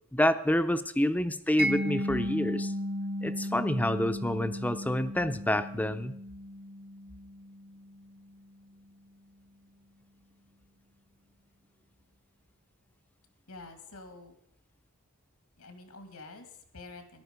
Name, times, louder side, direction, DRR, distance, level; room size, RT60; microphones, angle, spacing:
voice 1, 0.1-2.7 3.2-6.1, left 1 dB, 5° left, 11 dB, 0.6 m, -28 dB
Mallet percussion, 1.6-8.4, equal, 45° right, 1.0 m, -35 dB
voice 2, 13.5-14.3 15.6-17.2, left 3 dB, 85° left, 7 dB, 2.3 m, -48 dB
14.0 x 11.0 x 5.3 m, 0.74 s
head